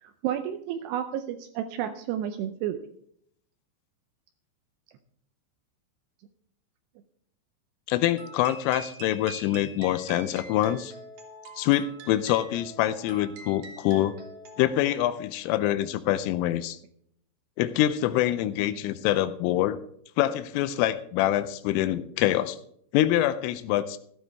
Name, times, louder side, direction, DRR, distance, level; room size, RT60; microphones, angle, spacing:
voice 1, 0.0-2.8, right 10 dB, 85° right, 7 dB, 2.4 m, -31 dB
voice 2, 7.9-10.9 11.6-14.2 14.6-16.8 17.6-19.8 20.2-22.6 22.9-24.0, left 13 dB, 90° left, 12 dB, 3.2 m, -25 dB
sound 1, 8.2-15.0, right 3 dB, 55° right, 2.7 m, -45 dB
14.5 x 12.5 x 3.5 m, 0.68 s
omnidirectional pair, 5.7 m